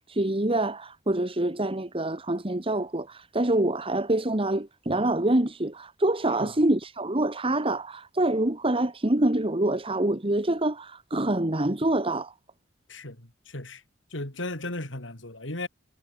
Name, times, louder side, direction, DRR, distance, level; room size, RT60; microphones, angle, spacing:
voice 1, 0.0-12.3, right 1 dB, 30° right, 1.7 m, -26 dB
voice 2, 12.9-13.8 14.1-15.7, left 2 dB, 80° left, 4.5 m, -36 dB
head